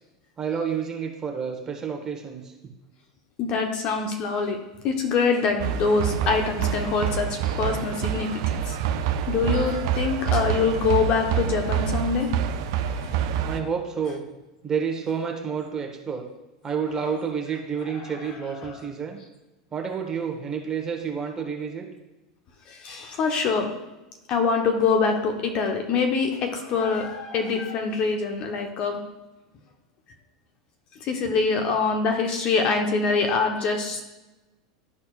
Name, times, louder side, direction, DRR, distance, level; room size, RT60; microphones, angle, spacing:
voice 1, 0.4-2.4 13.4-14.2 14.6-16.2 16.6-19.2 19.7-21.9, right 6 dB, 25° right, 2 dB, 1.4 m, -29 dB
voice 2, 3.4-4.6 4.8-8.8 9.3-12.3 13.0-13.1 22.7-23.7 24.3-29.0 31.0-34.0, left 4 dB, 45° left, 3 dB, 1.1 m, -24 dB
sound 1, 5.6-13.6, right 9 dB, 60° right, 0.5 m, -27 dB
12.0 x 4.2 x 2.5 m, 1.0 s
hypercardioid pair, 90°, 2 cm